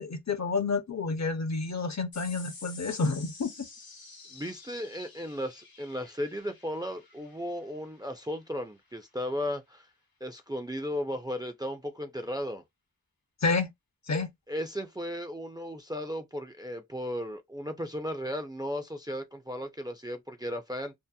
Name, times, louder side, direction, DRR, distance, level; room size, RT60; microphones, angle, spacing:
voice 1, 0.0-3.7 13.4-13.7 14.1-14.3, left 4 dB, 50° left, 0.6 m, -29 dB
sound 1, 2.1-8.9, left 3 dB, 85° left, 0.9 m, -50 dB
voice 2, 4.3-9.9 10.2-12.6 14.5-20.9, equal, 10° right, 0.4 m, -35 dB
2.7 x 2.0 x 2.2 m
wide cardioid pair, 55°, 35 cm